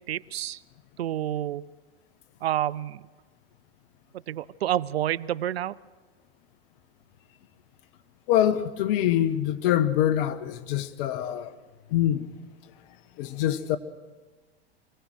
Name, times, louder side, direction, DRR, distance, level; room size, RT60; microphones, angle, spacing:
voice 1, 0.1-0.6 1.0-1.7 2.4-3.0 4.3-5.8, right 12 dB, 90° right, 0.6 m, -29 dB
voice 2, 8.3-11.5 11.9-12.3 12.6-12.7 13.2-13.8, left 11 dB, 65° left, 1.3 m, -24 dB
24.0 x 18.0 x 6.3 m
hypercardioid pair, 100°, 30 cm